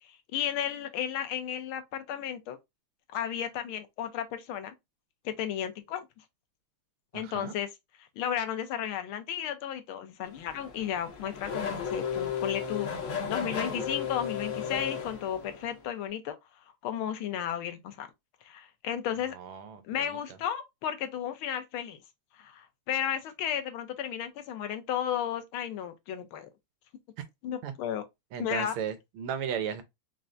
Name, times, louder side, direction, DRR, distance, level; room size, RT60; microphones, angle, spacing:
voice 1, 0.0-2.6 3.1-4.7 5.2-6.1 7.1-7.7 8.2-16.4 16.8-18.1 18.4-19.3 19.8-22.0 22.4-26.5 27.4-28.0 28.4-28.7, left 9 dB, 75° left, 1.5 m, -34 dB
voice 2, 7.1-7.5 19.3-20.2 27.6-27.7 28.3-29.8, right 8 dB, 80° right, 1.7 m, -35 dB
Race car auto racing / Accelerating revving vroom, 10.3-15.8, left 7 dB, 55° left, 0.9 m, -34 dB
4.5 x 3.2 x 2.5 m
omnidirectional pair, 2.4 m